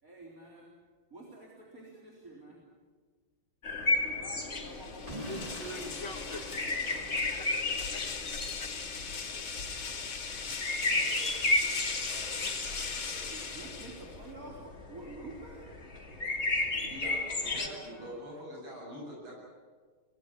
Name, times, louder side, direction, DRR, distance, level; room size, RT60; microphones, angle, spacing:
voice 1, 0.0-0.7 1.1-2.5 4.0-5.5 13.0-15.6 17.2-18.1, right 2 dB, 40° right, -2 dB, 4.4 m, -49 dB
sound 1, 3.6-17.7, left 2 dB, 35° left, 2.7 m, -34 dB
sound 2, 4.6-14.3, left 5 dB, 85° left, 3.1 m, -39 dB
voice 2, 4.6-6.7 7.1-8.7 9.2-9.4 17.6-18.0, left 2 dB, 60° left, 4 dB, 2.4 m, -46 dB
Explosion / Shatter, 5.1-7.8, right 1 dB, 20° right, 2.8 m, -45 dB
voice 3, 10.8-11.3 11.6-13.3 16.7-19.3, equal, 80° right, -4 dB, 8.9 m, -46 dB
24.5 x 19.5 x 9.9 m, 1.5 s
omnidirectional pair, 2.2 m